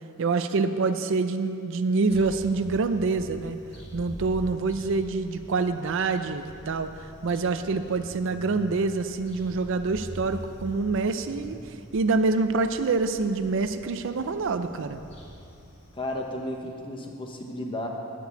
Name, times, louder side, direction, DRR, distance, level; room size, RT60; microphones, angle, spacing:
voice 1, 0.2-3.6 3.9-6.9 7.2-11.6 11.9-15.0, right 3 dB, 60° right, 9 dB, 0.5 m, -26 dB
sound 1, 2.1-16.7, equal, 55° left, 2.3 m, -45 dB
voice 2, 15.9-17.9, left 1 dB, 25° left, 1 dB, 1.0 m, -33 dB
9.8 x 6.1 x 8.1 m, 2.7 s
head